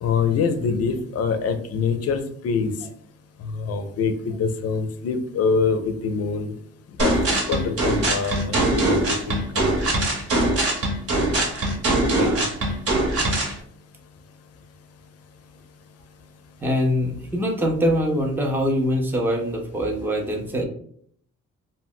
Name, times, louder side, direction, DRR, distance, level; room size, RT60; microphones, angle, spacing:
voice 1, 0.0-2.7 3.6-6.5 7.0-9.8, left 5 dB, 55° left, 8 dB, 0.5 m, -25 dB
sound 1, 7.0-13.5, right 2 dB, 50° right, 1.0 m, -22 dB
voice 2, 12.1-12.4 16.6-20.6, equal, 5° right, 1 dB, 0.5 m, -23 dB
2.1 x 2.0 x 3.7 m, 0.62 s
cardioid pair, 90°, 30 cm